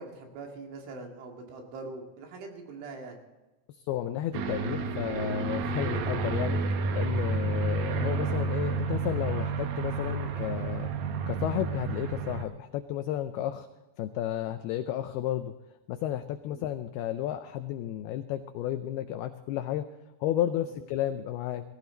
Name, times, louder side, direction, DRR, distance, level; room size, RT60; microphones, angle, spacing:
voice 1, 0.0-3.2 7.3-7.6 16.5-16.6, right 3 dB, 85° right, 2 dB, 4.8 m, -43 dB
voice 2, 3.8-6.6 6.9-10.9 11.3-13.7 14.0-15.5 15.9-19.9 20.2-21.6, left 11 dB, 90° left, 9 dB, 2.2 m, -32 dB
Aircraft, 4.3-12.4, right 4 dB, 70° right, 2.4 m, -30 dB
18.0 x 16.0 x 4.0 m, 1.1 s
omnidirectional pair, 5.3 m